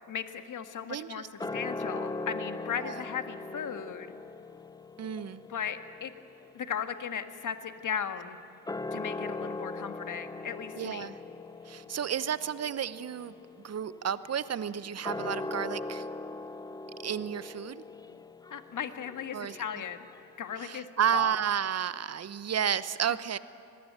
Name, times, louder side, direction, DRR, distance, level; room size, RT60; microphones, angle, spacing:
voice 1, 0.1-1.2 1.5-4.1 5.5-6.1 6.5-8.4 8.9-11.1 18.5-20.1 20.4-21.3, left 8 dB, 40° left, 8 dB, 1.8 m, -36 dB
voice 2, 0.9-1.5 2.8-3.0 5.0-5.4 10.8-11.2 11.6-13.3 13.6-16.1 17.0-17.8 19.3-19.6 20.6-23.4, right 8 dB, 30° right, 16 dB, 1.0 m, -32 dB
sound 1, 1.4-8.0 8.5-20.7, left 2 dB, 10° left, 0.7 m, -41 dB
25.0 x 19.0 x 9.0 m, 2.6 s
hypercardioid pair, 65°, 49 cm